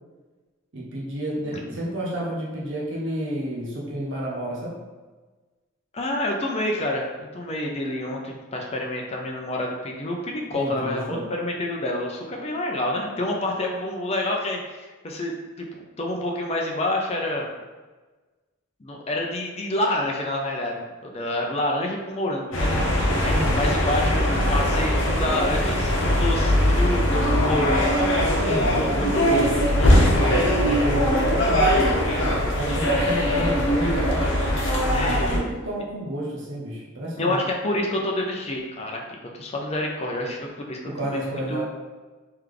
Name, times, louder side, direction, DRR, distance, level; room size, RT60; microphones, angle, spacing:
voice 1, 0.7-4.8 10.5-11.3 23.3-23.7 27.4-27.8 28.4-28.9 29.7-34.3 35.3-37.4 40.8-41.6, right 1 dB, 65° right, -4 dB, 0.8 m, -30 dB
voice 2, 5.9-17.5 18.8-22.9 23.2-27.9 28.2-28.4 28.8-30.2 33.3-33.4 34.9-35.4 37.2-41.6, left 1 dB, 30° left, 0 dB, 0.5 m, -28 dB
sound 1, 22.5-35.4, equal, 70° left, 0.9 m, -21 dB
3.3 x 3.2 x 3.8 m, 1.3 s
head